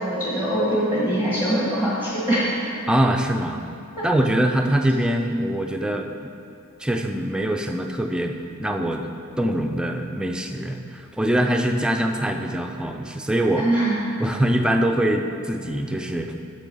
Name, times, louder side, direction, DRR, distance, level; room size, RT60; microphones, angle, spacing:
voice 1, 0.0-2.5 4.0-4.1 13.6-14.0, right 1 dB, 20° left, -8 dB, 1.7 m, -23 dB
voice 2, 2.9-3.6 4.0-6.3 6.8-9.1 9.4-13.7 14.2-16.4, right 1 dB, 5° right, 4 dB, 0.4 m, -23 dB
8.3 x 6.9 x 5.4 m, 2.5 s
head